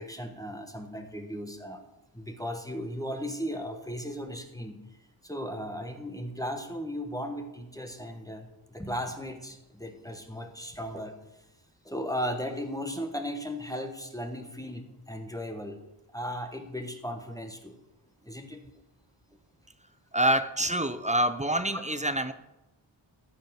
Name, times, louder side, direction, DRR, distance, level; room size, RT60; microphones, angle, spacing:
voice 1, 0.0-1.8 2.1-4.8 5.2-11.4 11.8-15.8 16.1-17.8 18.2-18.6 21.7-21.8, equal, 5° left, 5 dB, 1.2 m, -36 dB
voice 2, 20.1-22.3, right 1 dB, 15° right, 11 dB, 0.6 m, -26 dB
14.0 x 5.6 x 6.0 m, 0.93 s
wide cardioid pair, 85°, 47 cm